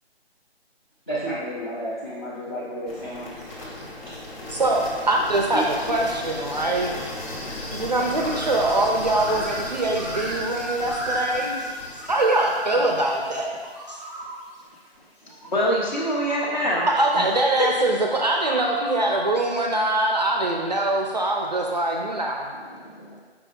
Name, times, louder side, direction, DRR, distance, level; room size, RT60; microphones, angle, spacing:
voice 1, 1.1-4.2 5.5-5.6, equal, 25° left, -10 dB, 0.5 m, -32 dB
sound 1, 2.9-14.8, left 1 dB, 65° left, 1.2 m, -36 dB
voice 2, 4.5-7.0 7.7-11.5 12.1-13.6 13.9-14.0 16.9-22.5, right 2 dB, 40° right, 1 dB, 0.4 m, -23 dB
sound 2, 8.1-8.8 9.1-11.7 12.0-12.8 13.4-14.3 15.3-17.1 18.2-19.4, right 1 dB, ahead, 0.9 m, -35 dB
voice 3, 15.4-16.9 17.1-17.2 17.6-17.7 22.7-23.1, equal, 40° left, -3 dB, 1.0 m, -25 dB
5.0 x 4.4 x 2.4 m, 1.4 s
figure-of-eight pair, 155°, 33 cm